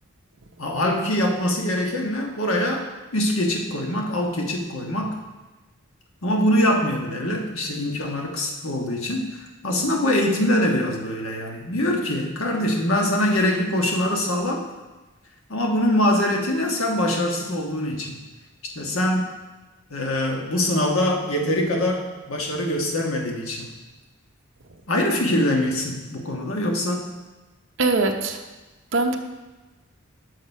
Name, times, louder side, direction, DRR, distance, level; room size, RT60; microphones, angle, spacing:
voice 1, 0.6-2.8 3.1-5.1 6.2-14.6 15.5-18.2 18.7-19.3 19.9-23.7 24.9-27.1, left 1 dB, 75° left, 1 dB, 1.4 m, -23 dB
voice 2, 27.8-28.4 28.9-29.2, right 3 dB, 60° right, 4 dB, 0.8 m, -21 dB
6.7 x 6.5 x 5.4 m, 1.1 s
head